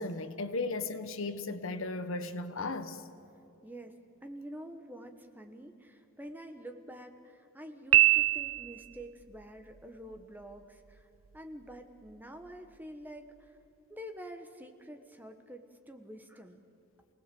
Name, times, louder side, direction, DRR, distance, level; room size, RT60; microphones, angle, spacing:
voice 1, 0.0-3.0, left 3 dB, 65° left, 1.3 m, -36 dB
voice 2, 3.6-11.1 11.3-13.6 13.9-16.6, equal, 10° right, 1.3 m, -47 dB
Piano, 7.9-9.0, right 16 dB, 65° right, 0.5 m, -24 dB
28.5 x 19.0 x 7.7 m
head